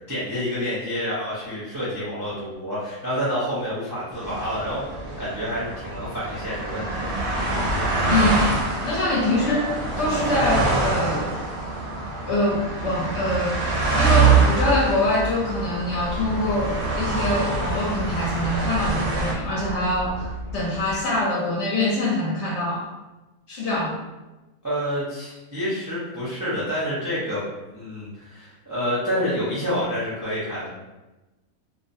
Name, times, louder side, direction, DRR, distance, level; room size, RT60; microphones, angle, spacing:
voice 1, 0.1-7.1 24.6-27.4 27.7-30.7, equal, 30° right, -10 dB, 0.3 m, -28 dB
sound 1, 4.2-19.3, right 3 dB, 65° right, 0.7 m, -25 dB
voice 2, 8.1-8.4 8.8-11.4 12.2-13.5 13.9-22.9 23.5-24.0, left 1 dB, 65° left, -4 dB, 0.8 m, -24 dB
sound 2, 15.9-21.0, equal, 90° right, 1.0 m, -34 dB
2.5 x 2.0 x 2.6 m, 1.1 s
omnidirectional pair, 1.5 m